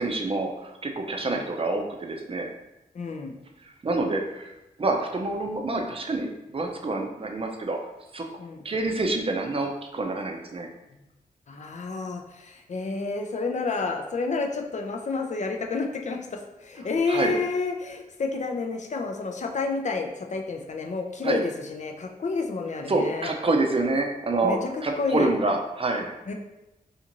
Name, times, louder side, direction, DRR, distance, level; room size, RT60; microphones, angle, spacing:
voice 1, 0.0-2.5 3.6-7.8 8.1-8.3 8.6-10.7 17.1-17.3 21.2-21.4 22.9-24.6 24.8-26.1, right 2 dB, 35° right, 3 dB, 0.5 m, -27 dB
voice 2, 2.9-3.3 8.4-8.6 11.5-23.3 24.4-25.3 26.3-26.4, left 4 dB, 50° left, 3 dB, 0.5 m, -30 dB
2.5 x 2.4 x 2.9 m, 0.94 s
supercardioid pair, 40°, 16 cm